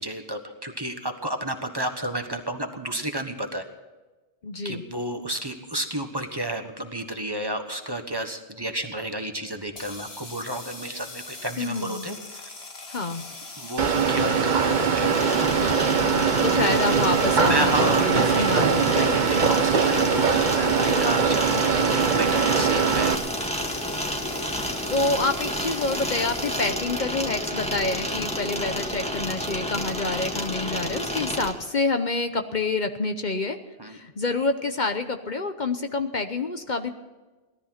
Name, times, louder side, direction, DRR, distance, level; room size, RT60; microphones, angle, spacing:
voice 1, 0.0-3.7 4.6-12.5 13.6-15.3 17.4-23.1 33.8-34.0, right 1 dB, 25° right, 6 dB, 1.3 m, -31 dB
voice 2, 4.4-4.8 11.6-12.1 12.9-13.2 16.0-19.2 24.9-33.6 33.8-36.9, left 3 dB, 50° left, 7 dB, 1.0 m, -27 dB
sound 1, 9.7-26.7, left 3 dB, 85° left, 2.0 m, -41 dB
sound 2, 13.8-23.1, right 6 dB, 50° right, 1.0 m, -22 dB
sound 3, 15.1-31.5, equal, 5° left, 1.7 m, -30 dB
18.0 x 13.0 x 5.8 m, 1.2 s
omnidirectional pair, 1.0 m